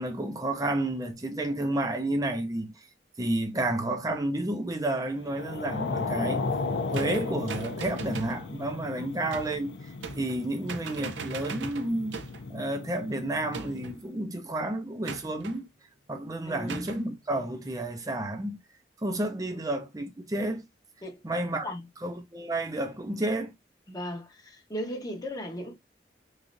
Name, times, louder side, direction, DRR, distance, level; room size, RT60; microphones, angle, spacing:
voice 1, 0.0-2.8 3.2-6.4 6.9-12.2 12.5-15.7 16.1-18.6 19.0-20.6 21.2-21.7 22.0-23.5, right 1 dB, 20° right, 0.6 m, -31 dB
sound 1, 5.2-14.0, left 3 dB, 85° left, 0.4 m, -35 dB
sound 2, 6.9-8.4 9.3-9.6 10.0-10.4 10.7-12.5 13.5-14.0 15.1-15.6 16.7-17.0, right 5 dB, 90° right, 0.5 m, -40 dB
voice 2, 16.5-16.9 19.5-19.6 21.0-21.9 23.9-25.7, equal, 20° left, 0.8 m, -37 dB
3.1 x 2.5 x 2.5 m
head